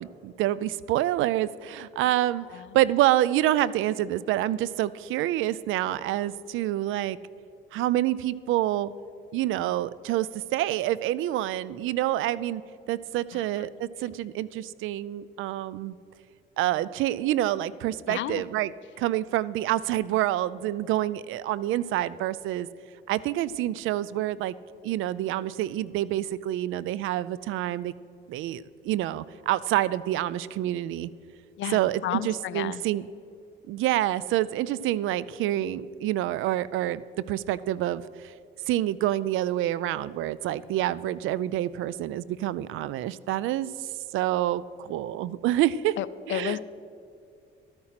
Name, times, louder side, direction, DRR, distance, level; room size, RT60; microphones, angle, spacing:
voice 1, 0.0-7.2 7.7-8.9 9.3-12.6 12.9-16.0 16.6-18.7 19.0-22.7 23.1-24.5 24.8-27.9 28.3-31.1 31.7-33.0 33.7-38.3 38.7-43.7 44.1-46.0 46.3-46.6, right 13 dB, 85° right, 19 dB, 0.4 m, -27 dB
voice 2, 2.4-2.8 13.3-13.5 18.1-18.4 31.6-32.8 46.0-46.6, left 13 dB, 75° left, 16 dB, 0.5 m, -32 dB
12.5 x 8.8 x 5.8 m, 2.4 s
cardioid pair, 90°, 20 cm